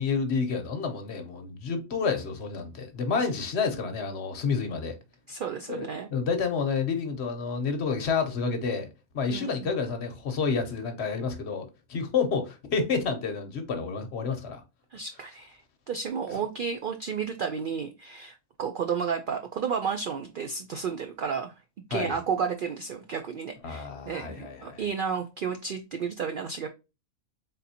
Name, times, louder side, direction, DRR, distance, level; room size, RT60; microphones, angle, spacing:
voice 1, 0.0-4.9 5.7-8.9 9.1-14.6 21.9-22.1 23.6-24.8, left 5 dB, 60° left, 1.0 m, -29 dB
voice 2, 5.3-6.1 9.3-9.7 14.9-15.6 15.9-21.5 21.9-26.7, right 6 dB, 70° right, 0.5 m, -32 dB
3.8 x 3.6 x 2.7 m
omnidirectional pair, 1.4 m